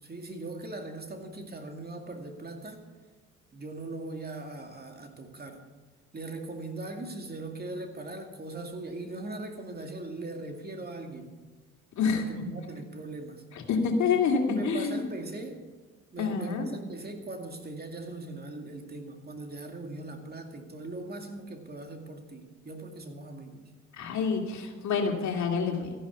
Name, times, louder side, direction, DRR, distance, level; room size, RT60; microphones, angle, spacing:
voice 1, 0.0-2.8 3.5-5.6 6.1-11.3 12.1-13.4 14.5-15.6 16.1-23.7, right 2 dB, 30° right, 4 dB, 2.3 m, -40 dB
voice 2, 13.5-15.1 16.2-16.7 23.9-25.9, left 5 dB, 70° left, 2 dB, 2.6 m, -27 dB
14.5 x 11.0 x 7.0 m, 1.3 s
cardioid pair, 90°, 30 cm